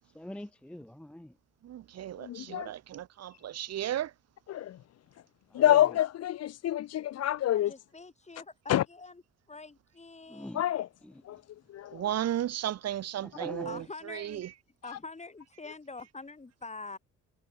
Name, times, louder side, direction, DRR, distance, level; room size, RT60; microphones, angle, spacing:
voice 1, 0.1-1.3 5.5-5.9 10.3-10.6 13.2-13.8, left 1 dB, 5° left, 0.5 m, -42 dB
voice 2, 1.6-4.1 11.9-14.5, right 11 dB, 55° right, 0.9 m, -34 dB
voice 3, 2.2-2.7 4.5-4.8 5.5-7.7 8.7-8.8 10.5-10.9 11.3-11.4 11.7-12.0, left 12 dB, 55° left, 0.6 m, -27 dB
voice 4, 7.5-9.2 9.5-10.6 13.6-14.4 14.8-17.0, left 3 dB, 20° left, 5.9 m, -45 dB
cardioid pair, 90°, 30 cm